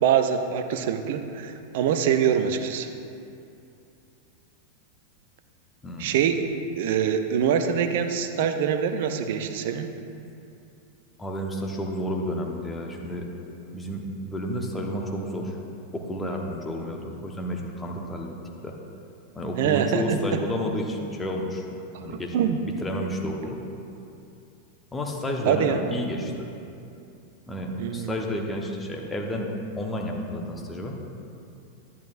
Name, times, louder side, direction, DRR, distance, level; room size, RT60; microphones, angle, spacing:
voice 1, 0.0-2.9 6.0-6.4 6.8-9.9 19.6-20.2 22.1-22.6 25.5-25.8 27.8-28.2, right 8 dB, 55° right, 8 dB, 0.6 m, -24 dB
voice 2, 5.8-6.1 11.2-13.2 13.7-15.6 15.9-18.3 18.6-18.8 19.3-21.7 22.0-22.3 22.6-23.6 24.9-26.5 27.5-31.0, equal, 10° left, 0 dB, 1.1 m, -31 dB
11.0 x 10.5 x 2.5 m, 2.6 s
figure-of-eight pair, 90°, 0 cm